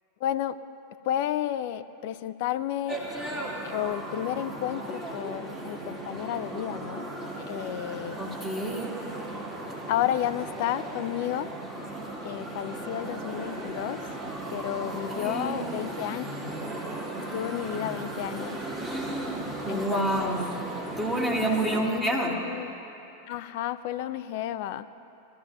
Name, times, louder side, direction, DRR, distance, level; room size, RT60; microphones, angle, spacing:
voice 1, 0.2-0.6 1.1-3.0 3.6-7.1 7.5-8.2 9.9-11.5 12.2-14.0 14.5-16.2 17.3-18.6 19.7-20.4 21.8-22.8 23.3-24.9, left 11 dB, 50° left, 14 dB, 0.4 m, -31 dB
sound 1, 2.9-21.9, right 2 dB, 20° right, 3.1 m, -36 dB
voice 2, 8.2-8.9 15.1-15.5 18.8-19.4 19.6-20.5 21.0-22.4, right 1 dB, 5° right, -4 dB, 2.3 m, -29 dB
21.0 x 14.0 x 2.7 m, 2.9 s
figure-of-eight pair, 90°, 0 cm